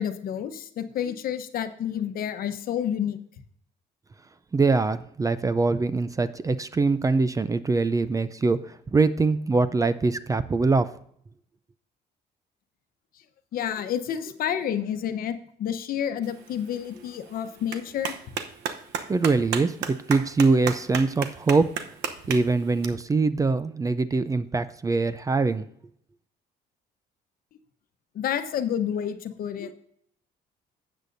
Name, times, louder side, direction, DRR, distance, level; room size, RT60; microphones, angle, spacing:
voice 1, 0.0-3.2 13.5-18.2 28.1-29.7, left 9 dB, 60° left, 9 dB, 1.0 m, -29 dB
voice 2, 4.5-10.9 19.1-21.7 22.3-25.7, right 3 dB, 20° right, 14 dB, 0.4 m, -23 dB
Clapping, 16.2-22.8, right 8 dB, 80° right, 0.9 m, -35 dB
12.5 x 8.2 x 2.6 m, 0.65 s
cardioid pair, 110°, 17 cm